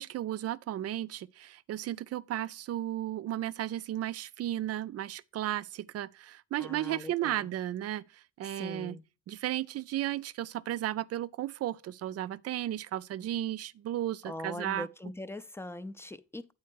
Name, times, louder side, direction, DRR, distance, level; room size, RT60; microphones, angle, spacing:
voice 1, 0.0-9.0 9.3-14.9, right 13 dB, 55° right, 0.4 m, -34 dB
voice 2, 6.6-7.5 8.4-9.0 14.3-16.5, left 1 dB, 10° left, 0.4 m, -41 dB
8.3 x 4.4 x 4.5 m
cardioid pair, 90°, 30 cm